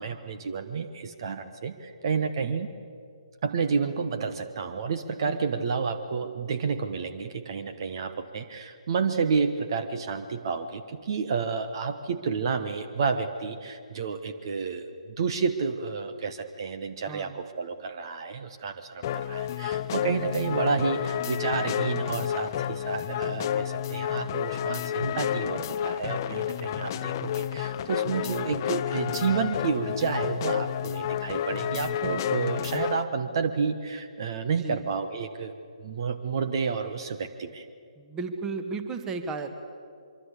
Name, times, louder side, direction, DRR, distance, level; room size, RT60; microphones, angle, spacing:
voice 1, 0.0-2.7 3.4-14.9 15.2-37.7, right 5 dB, 40° right, 9 dB, 1.3 m, -30 dB
voice 2, 5.3-5.7 17.1-17.4 34.5-34.8 38.0-39.5, right 4 dB, 15° right, 8 dB, 1.7 m, -35 dB
sound 1, 19.0-33.0, left 10 dB, 30° left, 0.7 m, -30 dB
24.5 x 24.5 x 8.2 m, 2.3 s
figure-of-eight pair, 135°, 4 cm